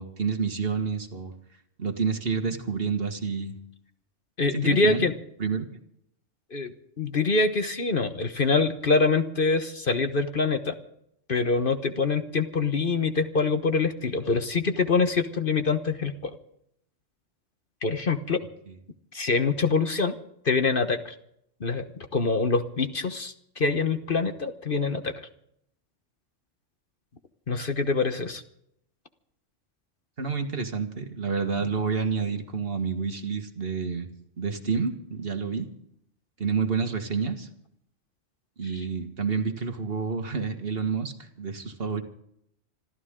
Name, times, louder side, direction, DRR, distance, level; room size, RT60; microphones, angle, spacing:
voice 1, 0.0-1.3 1.8-3.5 4.5-5.0 5.4-5.7 30.2-34.1 34.4-35.7 36.4-37.5 38.6-42.0, right 5 dB, 50° right, 7 dB, 1.9 m, -29 dB
voice 2, 4.4-5.1 6.5-10.7 11.3-16.4 17.8-18.4 19.1-20.1 20.4-21.1 21.6-21.8 22.1-25.1 27.5-28.4, left 4 dB, 45° left, 8 dB, 1.3 m, -25 dB
27.0 x 13.5 x 3.8 m, 0.72 s
omnidirectional pair, 1.3 m